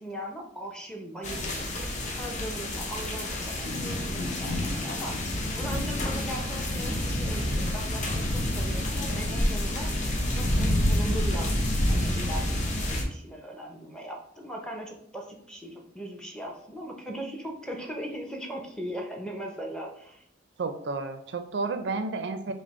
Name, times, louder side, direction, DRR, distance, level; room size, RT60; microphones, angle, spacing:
voice 1, 0.0-1.7 2.1-5.1 5.6-9.9 10.3-11.5 11.9-20.2, right 1 dB, 5° left, 0 dB, 0.6 m, -39 dB
sound 1, 1.2-13.0, left 1 dB, 40° left, 0.8 m, -28 dB
voice 2, 20.6-22.5, right 3 dB, 65° right, 8 dB, 0.4 m, -31 dB
4.9 x 2.0 x 4.1 m, 0.69 s
head